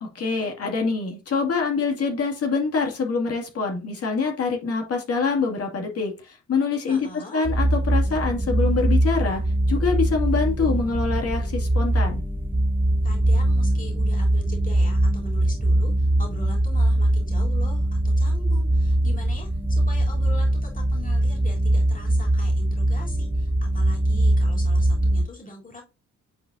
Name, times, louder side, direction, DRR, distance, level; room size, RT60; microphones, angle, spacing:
voice 1, 0.0-9.4 9.7-12.2, left 4 dB, 50° left, 1 dB, 2.4 m, -25 dB
voice 2, 6.8-7.5 13.0-25.8, left 2 dB, 30° left, -2 dB, 3.6 m, -42 dB
sound 1, 7.4-25.2, right 1 dB, 5° right, 0.6 m, -22 dB
9.5 x 4.2 x 2.7 m, 0.29 s
cardioid pair, 90°, 30 cm